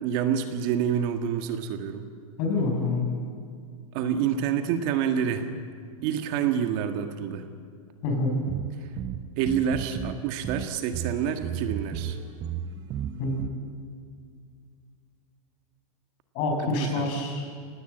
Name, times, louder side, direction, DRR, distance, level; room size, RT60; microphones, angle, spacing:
voice 1, 0.0-2.1 3.9-5.5 6.0-7.5 9.4-12.2 16.6-17.1, right 8 dB, 40° right, 7 dB, 1.7 m, -27 dB
voice 2, 2.4-3.1 8.0-8.4 13.2-13.7 16.3-17.5, left 2 dB, 40° left, 2 dB, 6.5 m, -27 dB
sound 1, 8.5-10.2 10.4-13.5, right 9 dB, 25° right, 1.0 m, -33 dB
25.0 x 18.5 x 8.0 m, 2.2 s
supercardioid pair, 150°, 18 cm